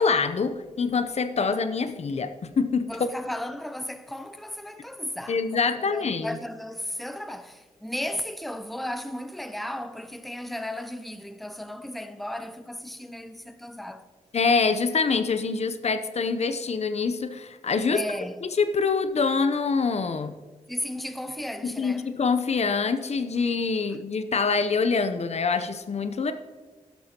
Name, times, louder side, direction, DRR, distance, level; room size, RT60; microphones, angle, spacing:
voice 1, 0.0-2.9 5.3-6.4 14.3-18.0 18.6-20.3 21.6-26.3, left 4 dB, 55° left, 0.7 m, -25 dB
voice 2, 2.8-14.0 17.9-18.4 20.7-22.1, left 1 dB, ahead, 0.7 m, -35 dB
12.5 x 11.5 x 3.0 m
cardioid pair, 55°, 13 cm